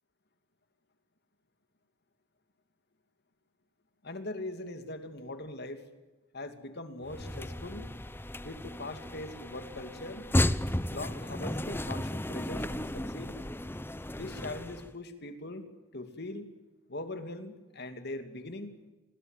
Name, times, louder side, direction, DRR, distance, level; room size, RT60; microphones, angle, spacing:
voice 1, 4.0-5.8 6.3-7.9 8.4-10.3 10.9-13.4 14.1-15.7 15.9-16.5 16.9-18.8, left 2 dB, 50° left, 8 dB, 2.8 m, -41 dB
sound 1, 7.0-14.9, left 1 dB, 10° left, 0.9 m, -34 dB
28.5 x 21.5 x 9.3 m, 1.1 s
head